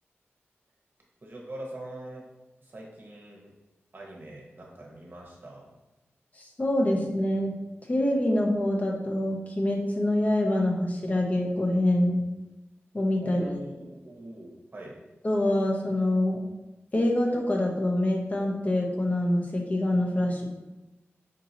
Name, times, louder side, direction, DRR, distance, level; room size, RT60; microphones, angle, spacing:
voice 1, 1.2-2.2 2.6-3.5 3.9-5.7 13.2-15.0, right 1 dB, 50° right, -2 dB, 1.0 m, -43 dB
voice 2, 6.4-7.5 7.9-12.2 12.9-13.5 15.2-16.4 16.9-20.4, left 1 dB, 35° left, 0 dB, 0.7 m, -25 dB
5.2 x 2.8 x 2.7 m, 1.0 s
wide cardioid pair, 110°, 4 cm